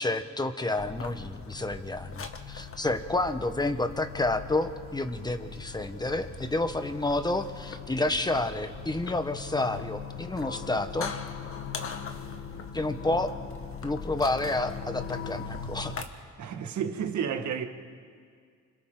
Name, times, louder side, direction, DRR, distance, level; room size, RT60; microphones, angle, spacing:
voice 1, 0.0-11.1 12.7-13.3 13.8-16.0, left 2 dB, 15° left, 1.3 m, -30 dB
sound 1, 0.8-16.0, left 6 dB, 45° left, 1.6 m, -40 dB
voice 2, 16.4-17.7, right 7 dB, 70° right, 1.7 m, -31 dB
28.5 x 26.5 x 3.9 m
cardioid pair, 90°, 30 cm